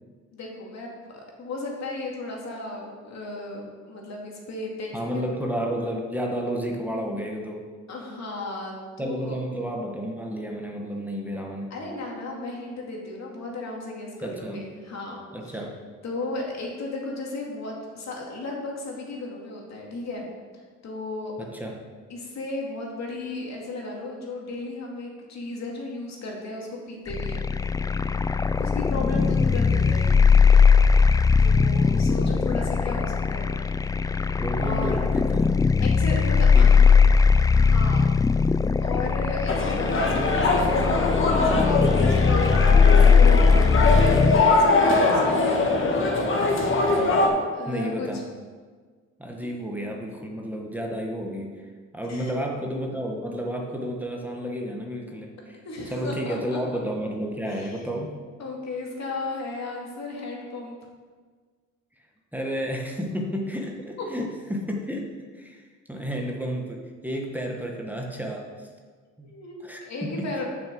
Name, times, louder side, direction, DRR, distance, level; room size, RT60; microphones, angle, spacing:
voice 1, 0.3-5.2 7.9-9.4 11.7-15.2 15.5-15.6 16.0-20.3 20.8-21.3 22.1-27.5 28.6-30.3 31.4-33.5 34.6-35.0 35.8-36.9 37.5-38.2 38.8-42.6 42.9-43.7 44.1-45.8 47.5-48.1 52.1-52.3 55.6-56.6 57.5-57.8 58.4-60.8 69.2-70.4, left 2 dB, 60° left, -1 dB, 2.4 m, -35 dB
voice 2, 4.9-7.7 9.0-11.7 14.2-14.6 15.3-15.8 21.4-21.8 34.4-35.5 36.5-36.7 47.7-48.2 49.2-55.6 55.9-58.2 62.3-68.7 69.2-69.3 69.6-70.4, equal, 5° right, 0 dB, 1.3 m, -31 dB
sound 1, 27.1-44.4, left 5 dB, 15° left, 0.3 m, -19 dB
sound 2, 39.5-47.3, left 2 dB, 40° left, 1.5 m, -22 dB
7.2 x 6.2 x 6.8 m, 1.5 s
cardioid pair, 90°, 30 cm